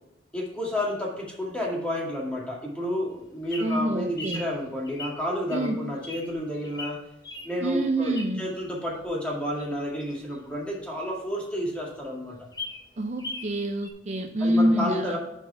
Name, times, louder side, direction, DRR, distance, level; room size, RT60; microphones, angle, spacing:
voice 1, 0.3-7.0 7.4-12.4 14.4-15.2, equal, 5° left, -3 dB, 2.0 m, -31 dB
Bird vocalization bird call bird song, 3.1-8.6 9.0-11.2 11.5-11.6 11.9-12.0 12.3-13.5 13.8-13.9, left 2 dB, 20° left, 1.1 m, -40 dB
voice 2, 3.6-4.4 5.5-5.8 7.6-8.4 13.0-15.2, right 1 dB, 40° right, 5 dB, 0.5 m, -26 dB
6.7 x 4.6 x 5.5 m, 0.92 s
head